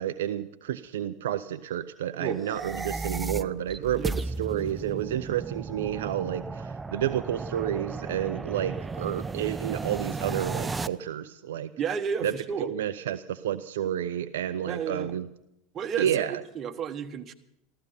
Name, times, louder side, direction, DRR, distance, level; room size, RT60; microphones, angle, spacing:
voice 1, 0.0-11.7 12.2-12.3 12.6-15.3 16.0-16.4, right 11 dB, 70° right, 10 dB, 0.6 m, -30 dB
sound 1, 2.4-10.9, right 3 dB, 15° right, 0.6 m, -34 dB
voice 2, 11.8-12.7 14.6-15.1 15.7-17.3, right 7 dB, 35° right, 7 dB, 1.4 m, -32 dB
14.5 x 14.5 x 5.7 m, 0.82 s
hypercardioid pair, 85°, 0 cm